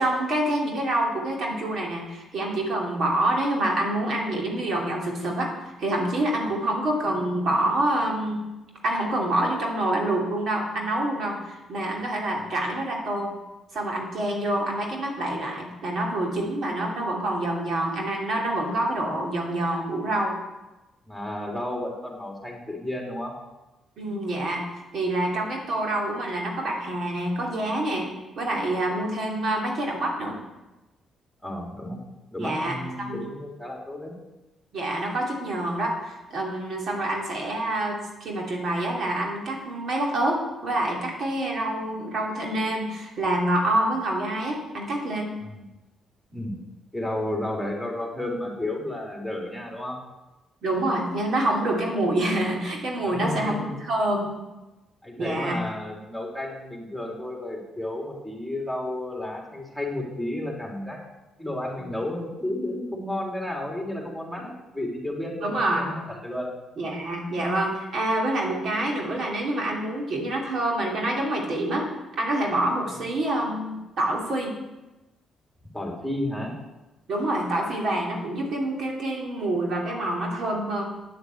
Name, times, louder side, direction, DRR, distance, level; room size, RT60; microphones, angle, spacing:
voice 1, 0.0-5.5 5.8-8.4 8.8-13.3 13.7-20.3 24.0-24.6 24.9-28.1 28.4-30.4 32.4-33.3 34.7-45.3 50.6-54.4 55.2-55.6 61.8-61.9 64.4-64.5 65.4-65.9 66.8-71.9 72.2-74.5 77.1-80.8, right 1 dB, 65° right, -1 dB, 2.9 m, -27 dB
voice 2, 21.1-23.3 31.4-32.0 32.3-34.1 36.9-37.0 45.4-45.7 46.3-46.6 46.9-50.0 53.0-53.7 55.0-61.0 61.4-66.5 75.7-76.5, left 1 dB, 5° right, -1 dB, 3.4 m, -32 dB
9.6 x 8.0 x 8.1 m, 1.0 s
cardioid pair, 90°, 0 cm